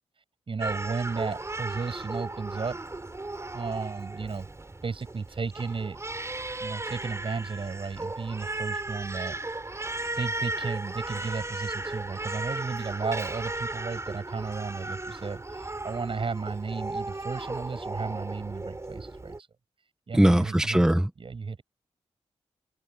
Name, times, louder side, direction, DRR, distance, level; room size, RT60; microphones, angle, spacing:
voice 1, 0.5-2.8 3.5-4.5 4.8-6.0 6.6-9.4 10.2-19.4 20.1-20.9 21.2-21.6, right 4 dB, 50° right, 7.3 m, -34 dB
Crying sobbing, 0.6-19.4, right 2 dB, 25° right, 4.7 m, -36 dB
voice 2, 20.1-21.1, right 1 dB, 5° right, 1.2 m, -20 dB
cardioid pair, 65°, 11 cm